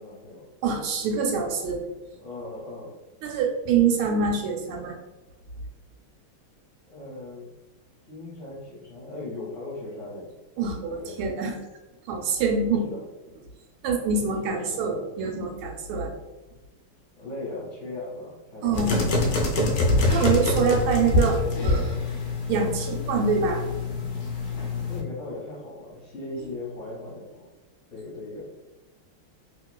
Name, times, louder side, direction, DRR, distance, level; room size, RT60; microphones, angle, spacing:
voice 1, 0.0-0.4 2.2-2.9 6.9-7.4 8.1-10.3 11.0-11.2 12.8-13.0 14.4-14.8 17.1-19.2 24.9-27.5 27.9-28.4, left 2 dB, 50° left, -6 dB, 1.0 m, -38 dB
voice 2, 0.6-1.8 3.2-5.0 10.6-11.5 12.1-12.9 13.8-16.1 18.6-19.7 20.1-22.0 22.5-23.6, right 5 dB, 80° right, 2 dB, 1.4 m, -25 dB
sound 1, 18.7-25.0, left 2 dB, 80° left, 0.8 m, -25 dB
3.0 x 2.9 x 2.2 m, 1.1 s
omnidirectional pair, 2.4 m